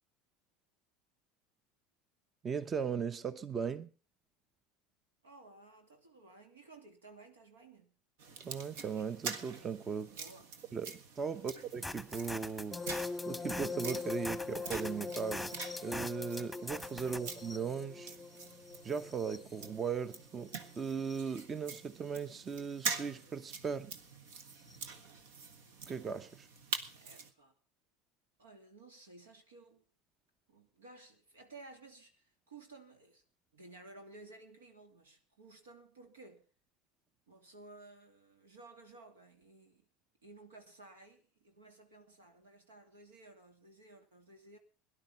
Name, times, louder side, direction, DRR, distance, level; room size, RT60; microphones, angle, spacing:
voice 1, 2.4-3.9 8.4-10.1 10.7-13.0 13.3-15.5 15.8-18.1 18.8-23.9 25.9-26.5, right 6 dB, 30° right, 0.9 m, -38 dB
voice 2, 5.2-8.0 10.1-10.5 11.3-11.5 16.9-17.2 26.9-27.5 28.4-29.8 30.5-33.2 33.5-36.5 37.3-39.8 40.2-44.6, right 2 dB, 90° right, 2.6 m, -56 dB
sound 1, 8.2-27.3, right 5 dB, 75° right, 1.6 m, -45 dB
sound 2, 11.7-17.2, left 1 dB, ahead, 1.4 m, -42 dB
sound 3, 12.7-21.4 22.7-23.0 24.7-24.8, left 4 dB, 15° left, 0.7 m, -43 dB
17.5 x 11.0 x 5.4 m
hypercardioid pair, 80°, 0 cm